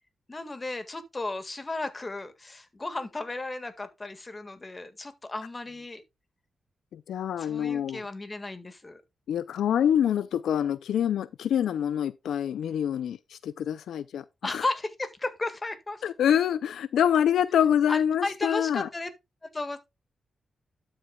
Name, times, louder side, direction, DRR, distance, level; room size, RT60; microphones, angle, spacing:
voice 1, 0.3-6.0 7.4-9.0 14.4-16.0 17.9-19.1 19.4-19.8, left 2 dB, 25° left, 1.8 m, -34 dB
voice 2, 6.9-8.0 9.3-14.6 16.0-18.9, left 9 dB, 90° left, 0.4 m, -26 dB
12.0 x 7.7 x 2.3 m
cardioid pair, 80°, 0 cm